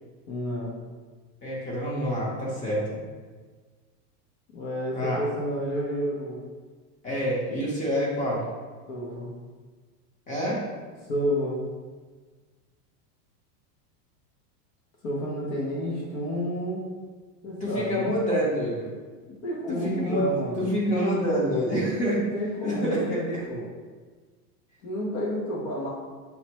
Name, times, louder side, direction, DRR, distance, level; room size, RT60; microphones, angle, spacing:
voice 1, 0.3-0.7 4.5-6.4 8.9-9.3 11.1-11.6 15.0-16.9 17.4-18.1 19.3-20.7 22.2-23.7 24.8-25.9, equal, 45° left, -4 dB, 0.9 m, -30 dB
voice 2, 1.4-3.0 4.9-5.2 7.0-8.4 10.3-10.6 17.6-18.9 19.7-20.3 20.6-22.2 22.6-23.0, equal, 15° left, -5 dB, 0.8 m, -27 dB
5.7 x 2.2 x 2.9 m, 1.4 s
supercardioid pair, 145°, 48 cm